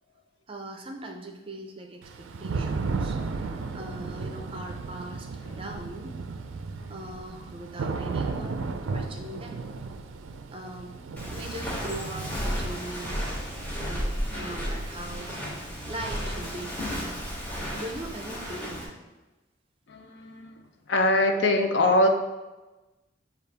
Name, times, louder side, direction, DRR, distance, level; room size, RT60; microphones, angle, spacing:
voice 1, 0.5-3.2 3.5-6.2 6.9-8.6 8.9-9.6 10.5-13.2 13.8-15.4 15.9-16.7 17.7-18.9, right 1 dB, 30° right, 3 dB, 0.4 m, -40 dB
Thunder / Rain, 2.0-17.8, right 4 dB, 90° right, 0.4 m, -35 dB
Walk footsteps, 11.2-18.8, equal, 10° left, 1.0 m, -33 dB
voice 2, 19.9-20.6 20.9-22.1, left 1 dB, 65° left, 4 dB, 0.5 m, -24 dB
6.6 x 2.4 x 3.3 m, 1.1 s
head